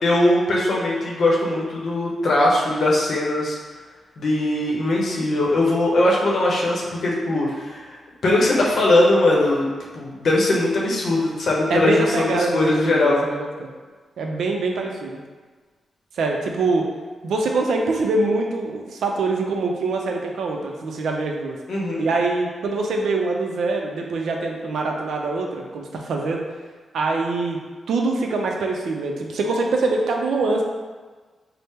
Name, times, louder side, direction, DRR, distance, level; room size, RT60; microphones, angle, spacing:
voice 1, 0.0-3.6 4.2-8.0 8.2-9.7 9.9-13.3 21.7-22.1, left 1 dB, 55° left, -3 dB, 0.7 m, -20 dB
voice 2, 11.7-13.7 14.2-15.2 16.2-16.8 17.2-21.6 22.0-26.4 26.9-27.6 27.9-30.6, right 3 dB, 80° right, 1 dB, 0.4 m, -24 dB
4.1 x 2.0 x 3.5 m, 1.4 s
wide cardioid pair, 160°, 0 cm